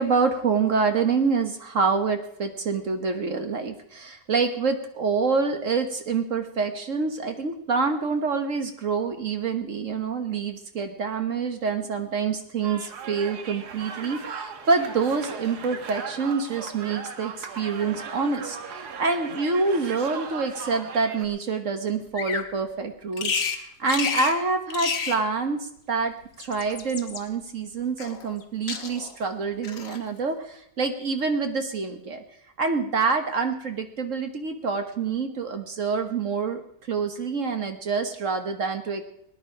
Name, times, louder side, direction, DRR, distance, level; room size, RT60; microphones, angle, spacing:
voice 1, 0.0-32.2 32.6-36.6 36.9-39.1, right 4 dB, 50° right, 7 dB, 1.5 m, -26 dB
sound 1, 12.6-21.3, right 6 dB, 75° right, 1.7 m, -38 dB
Bird vocalization bird call bird song, 22.1-22.5 23.2-23.6 23.9-24.4 24.7-25.2 26.2-27.2 28.0-28.4 28.7-29.2 29.6-30.0, left 6 dB, 55° left, 1.5 m, -30 dB
19.0 x 10.5 x 4.9 m, 0.72 s
omnidirectional pair, 1.8 m